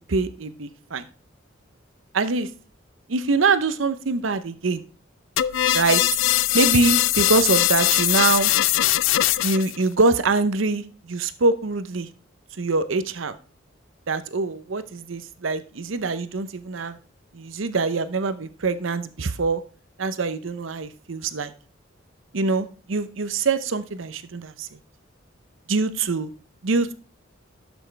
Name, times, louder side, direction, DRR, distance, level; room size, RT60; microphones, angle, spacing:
voice 1, 0.1-1.1 2.1-2.5 3.1-4.8 5.7-6.0 6.5-8.5 9.4-12.1 12.6-13.4 14.1-16.9 17.3-19.6 20.0-21.5 22.3-24.7 25.7-26.3 26.6-26.9, right 3 dB, 85° right, 12 dB, 0.7 m, -24 dB
sound 1, 5.4-9.8, left 14 dB, 75° left, 0.3 m, -21 dB
11.5 x 6.2 x 3.3 m, 0.39 s
head